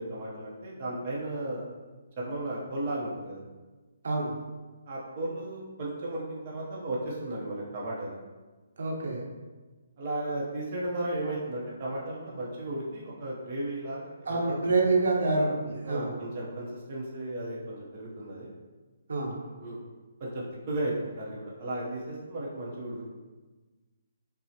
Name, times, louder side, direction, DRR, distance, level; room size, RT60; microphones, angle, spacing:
voice 1, 0.0-1.7 2.2-3.4 4.9-8.2 10.0-14.4 14.7-14.8 15.8-18.5 19.6-19.8 20.2-23.0, right 1 dB, 35° right, -5 dB, 0.6 m, -35 dB
voice 2, 8.8-9.2 14.3-16.1 19.1-19.4, right 3 dB, 70° right, -1 dB, 0.9 m, -27 dB
5.6 x 2.0 x 2.7 m, 1.3 s
hypercardioid pair, 170°, 0 cm